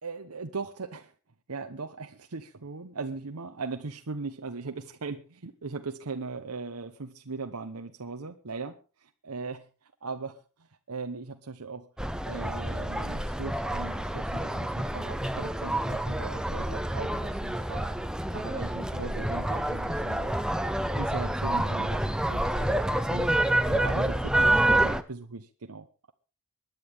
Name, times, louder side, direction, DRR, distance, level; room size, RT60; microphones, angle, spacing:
voice 1, 0.0-1.1 1.5-10.4 10.9-11.9 12.2-17.9 18.3-20.3 20.9-23.3 23.6-26.1, right 4 dB, 85° right, 6 dB, 1.0 m, -39 dB
sound 1, 12.0-25.0, right 1 dB, 5° right, 0.8 m, -28 dB
24.0 x 10.5 x 3.6 m, 0.33 s
head